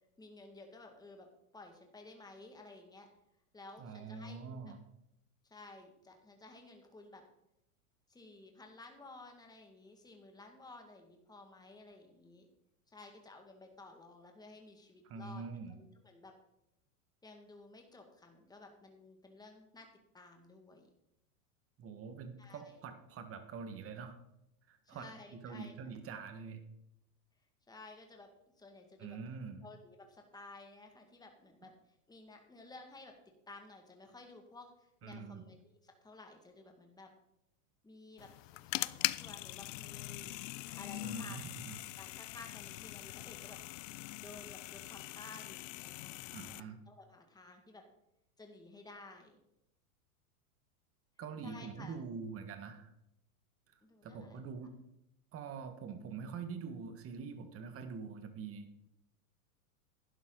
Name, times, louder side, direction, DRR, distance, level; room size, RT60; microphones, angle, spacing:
voice 1, 0.2-1.3 1.5-3.1 3.5-4.6 5.4-7.2 8.1-12.5 12.9-15.4 15.8-16.3 17.2-19.9 20.1-20.9 22.4-22.8 24.9-25.7 27.7-28.3 28.6-29.2 29.6-31.7 32.1-33.1 33.5-35.6 35.8-37.1 37.8-40.4 40.8-41.4 42.0-43.6 44.2-47.9 48.4-49.4 51.4-52.0 53.8-54.4, left 2 dB, 10° left, 3 dB, 2.0 m, -54 dB
voice 2, 3.8-4.8 15.0-15.8 21.8-24.2 24.7-25.0 25.3-26.6 29.0-29.6 35.0-35.5 41.0-41.8 46.3-46.8 51.2-52.9 54.0-54.7 55.3-58.7, right 5 dB, 30° right, 7 dB, 1.6 m, -45 dB
sound 1, 38.2-46.6, left 19 dB, 55° left, 0.5 m, -42 dB
11.5 x 10.5 x 3.9 m, 0.81 s
hypercardioid pair, 120°, 45 cm